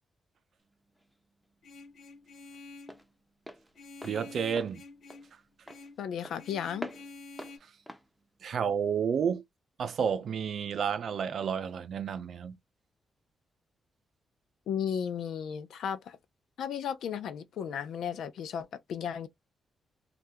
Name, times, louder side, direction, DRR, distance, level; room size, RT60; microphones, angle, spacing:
Walk footsteps, 0.6-9.3, equal, ahead, 0.5 m, -48 dB
Vehicle horn car horn honking, 1.6-3.0 3.7-5.3 5.7-6.0 6.4-7.6, left 3 dB, 65° left, 1.1 m, -49 dB
voice 1, 4.0-4.8 7.6-7.7 8.4-9.4 9.8-12.6, right 7 dB, 55° right, 0.5 m, -31 dB
voice 2, 6.0-6.9 14.7-16.2 16.6-19.3, left 8 dB, 85° left, 0.5 m, -34 dB
2.7 x 2.4 x 3.3 m
wide cardioid pair, 155°, 0 cm